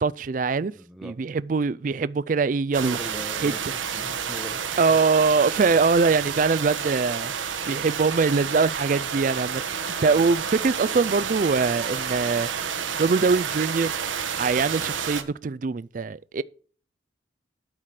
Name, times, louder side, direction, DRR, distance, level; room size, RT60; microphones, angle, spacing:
voice 1, 0.0-0.7 1.0-3.0 3.4-3.7 4.8-7.3 7.7-9.6 10.0-12.5 13.0-13.9 14.4-16.4, right 4 dB, 45° right, 0.4 m, -23 dB
voice 2, 0.7-1.1 2.8-4.6, equal, ahead, 0.8 m, -40 dB
sound 1, 2.7-15.2, right 7 dB, 90° right, 1.1 m, -30 dB
12.5 x 4.9 x 5.8 m
head